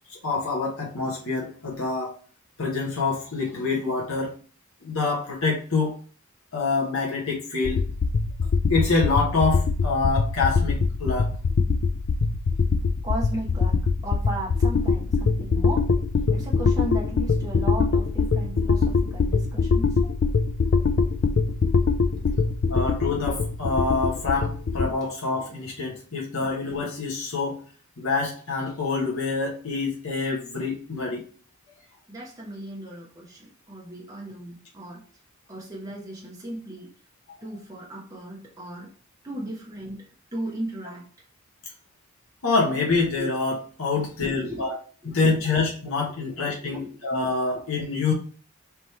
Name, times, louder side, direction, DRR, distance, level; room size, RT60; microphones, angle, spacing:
voice 1, 0.1-2.1 2.6-4.3 4.8-5.9 6.5-7.8 8.7-11.3 20.0-20.1 22.7-27.6 28.0-31.2 42.4-44.8 45.0-48.1, left 4 dB, 65° left, -3 dB, 1.1 m, -26 dB
sound 1, 7.6-24.9, left 4 dB, 50° left, 0.4 m, -23 dB
voice 2, 13.0-15.9 16.3-20.0 22.1-22.4 32.1-35.0 35.5-36.9 37.4-38.9 39.2-41.1 43.9-44.6 45.0-45.6 46.3-46.9, right 1 dB, 15° right, -4 dB, 1.1 m, -36 dB
3.5 x 3.1 x 4.2 m, 0.42 s
head